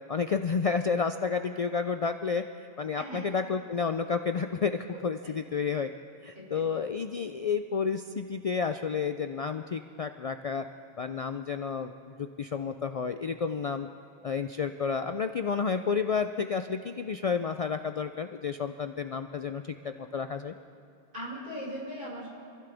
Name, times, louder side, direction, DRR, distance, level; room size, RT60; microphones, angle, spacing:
voice 1, 0.1-2.4 2.8-5.9 6.2-10.6 11.0-13.9 14.2-20.5, left 5 dB, 50° left, 8 dB, 0.5 m, -31 dB
voice 2, 3.0-3.3 5.2-5.3 6.3-6.7 21.1-22.3, equal, 55° right, -6 dB, 5.6 m, -39 dB
27.0 x 15.5 x 3.5 m, 2.6 s
omnidirectional pair, 1.0 m